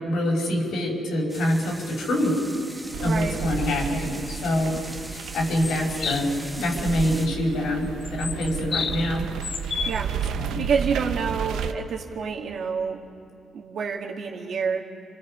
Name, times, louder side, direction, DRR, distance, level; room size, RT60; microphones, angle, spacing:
voice 1, 0.0-2.4 3.0-4.8 5.1-6.3 6.6-9.3 10.4-10.6, left 1 dB, 75° left, -1 dB, 5.5 m, -25 dB
sound 1, 1.3-7.3, right 1 dB, 5° right, 1.4 m, -40 dB
sound 2, 2.9-11.7, right 7 dB, 90° right, 0.9 m, -33 dB
voice 2, 3.0-3.4 9.8-13.0 13.5-14.9, right 6 dB, 60° right, 2 dB, 2.2 m, -28 dB
sound 3, 5.6-6.3 8.0-9.2 9.4-10.0, left 6 dB, 55° left, 0.9 m, -31 dB
29.5 x 26.0 x 5.5 m, 2.5 s
cardioid pair, 120°, 0 cm